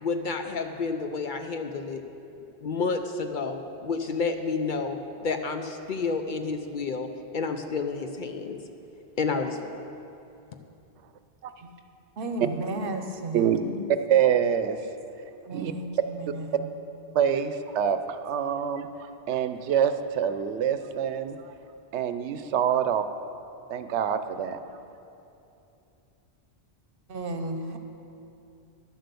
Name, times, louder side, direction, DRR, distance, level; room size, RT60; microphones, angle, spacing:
voice 1, 0.0-2.0 2.6-8.6 9.2-9.8, left 4 dB, 55° left, 6 dB, 0.7 m, -30 dB
voice 2, 12.2-13.8 15.5-16.7 27.1-27.8, right 2 dB, 55° right, 6 dB, 1.0 m, -34 dB
voice 3, 13.9-14.9 15.5-15.7 17.1-21.5 21.9-23.0 23.7-24.6, right 8 dB, 90° right, 10 dB, 0.9 m, -26 dB
11.0 x 7.7 x 6.8 m, 2.8 s
omnidirectional pair, 1.1 m